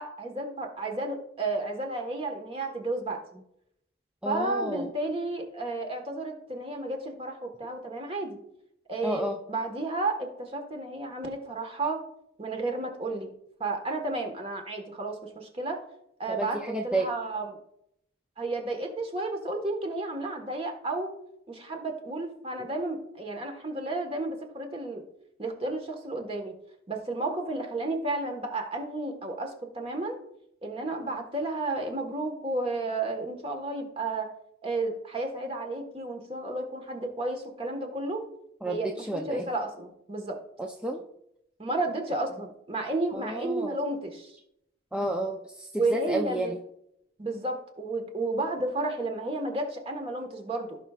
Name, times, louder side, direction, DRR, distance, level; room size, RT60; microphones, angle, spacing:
voice 1, 0.0-3.2 4.2-8.4 8.9-9.2 9.5-12.0 12.4-13.3 13.6-15.8 16.2-17.6 18.4-21.1 21.5-25.0 25.4-26.5 26.9-30.2 30.6-34.3 34.6-38.2 38.6-40.4 41.6-44.3 45.7-46.5 47.2-50.8, right 2 dB, 30° right, 3 dB, 1.4 m, -32 dB
voice 2, 4.2-4.9 9.0-9.4 16.3-17.1 22.6-22.7 38.6-39.4 40.6-41.1 43.1-43.8 44.9-46.6, right 1 dB, 5° right, 0 dB, 0.5 m, -31 dB
16.0 x 5.6 x 2.4 m, 0.77 s
head